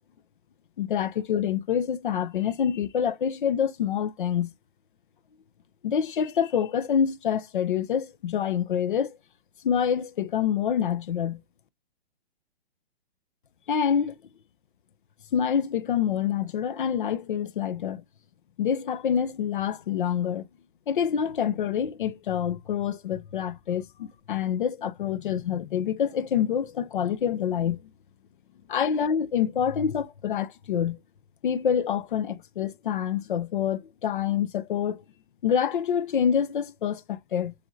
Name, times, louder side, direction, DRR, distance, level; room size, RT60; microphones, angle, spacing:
voice 1, 0.8-4.5 5.8-9.2 9.6-11.4 13.7-14.2 15.3-18.0 18.6-20.4 20.9-27.8 28.7-31.0 31.4-35.0 35.4-37.5, left 8 dB, 50° left, 0.6 m, -26 dB
7.2 x 2.6 x 2.6 m
hypercardioid pair, 180°, 32 cm